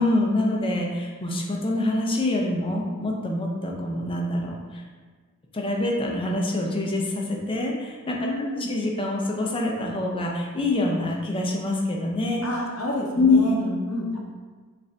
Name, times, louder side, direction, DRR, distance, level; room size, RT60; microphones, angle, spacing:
voice 1, 0.0-4.8 5.5-12.4 13.2-13.8, left 2 dB, 25° left, -1 dB, 0.6 m, -25 dB
voice 2, 8.2-8.7 12.4-13.6 13.9-14.2, left 1 dB, 70° left, 0 dB, 0.8 m, -29 dB
5.1 x 2.6 x 3.3 m, 1.4 s
head